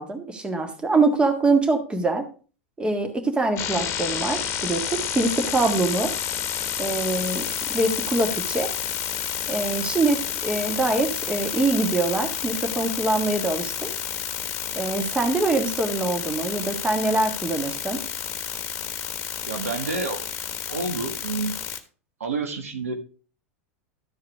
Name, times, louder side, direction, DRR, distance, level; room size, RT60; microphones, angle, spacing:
voice 1, 0.0-2.3 2.8-6.1 6.8-7.4 7.7-8.7 9.5-13.9 14.8-18.0, right 3 dB, 15° right, 5 dB, 1.7 m, -24 dB
sound 1, 3.6-21.8, left 9 dB, 40° left, 1.3 m, -30 dB
voice 2, 19.5-20.2 20.7-21.6 22.2-22.9, right 4 dB, 80° right, 6 dB, 1.5 m, -29 dB
13.0 x 4.7 x 4.7 m, 0.38 s
hypercardioid pair, 95°, 7 cm